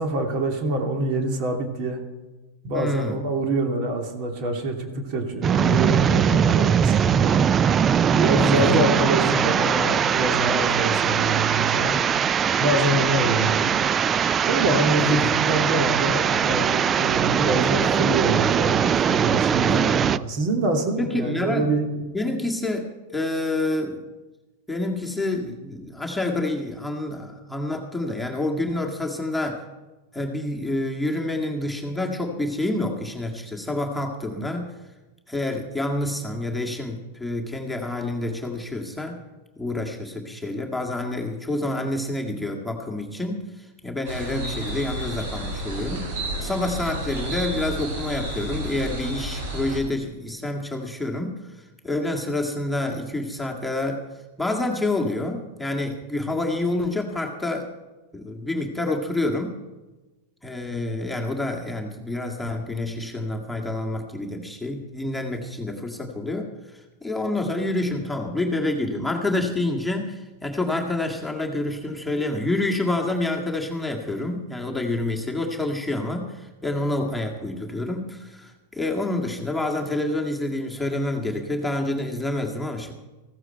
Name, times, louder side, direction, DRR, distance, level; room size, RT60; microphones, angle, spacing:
voice 1, 0.0-2.0 2.6-7.5 8.1-12.0 12.6-13.7 14.5-21.9, right 2 dB, 50° right, 4 dB, 2.6 m, -25 dB
voice 2, 2.7-3.2 8.4-8.8 15.0-15.3 19.7-20.3 21.0-21.7 22.1-24.1 24.7-29.6 30.1-34.7 35.3-39.2 39.6-46.1 46.4-51.4 51.8-54.1 54.4-57.7 58.1-59.6 60.4-66.5 67.0-82.9, left 2 dB, 5° left, 0 dB, 1.9 m, -28 dB
sound 1, 5.4-20.2, right 8 dB, 30° right, 0.4 m, -21 dB
sound 2, 44.0-49.8, right 1 dB, 65° right, 5.2 m, -31 dB
15.5 x 14.0 x 4.5 m, 1.2 s
hypercardioid pair, 100°, 0 cm